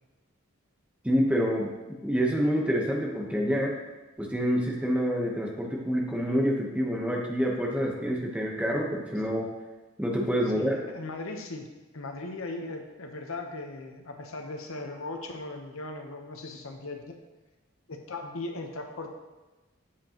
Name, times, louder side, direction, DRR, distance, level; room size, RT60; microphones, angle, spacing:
voice 1, 1.0-1.7 2.0-3.7 4.2-9.5 10.0-10.8, equal, 5° right, -1 dB, 1.0 m, -27 dB
voice 2, 10.5-11.7 11.9-17.1 17.9-19.1, left 2 dB, 85° left, 4 dB, 1.0 m, -38 dB
8.3 x 7.6 x 3.0 m, 1.1 s
head